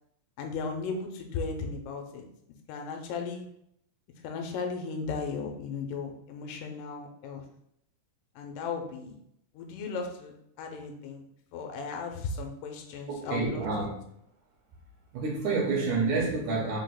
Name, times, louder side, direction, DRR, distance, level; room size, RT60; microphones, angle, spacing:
voice 1, 0.4-2.3 2.7-3.5 4.2-7.4 8.4-9.2 9.5-11.2 11.5-13.6, left 4 dB, 85° left, 3 dB, 2.2 m, -36 dB
voice 2, 13.1-14.0 15.1-16.8, right 4 dB, 75° right, -2 dB, 2.0 m, -28 dB
5.4 x 2.1 x 3.8 m, 0.75 s
omnidirectional pair, 3.8 m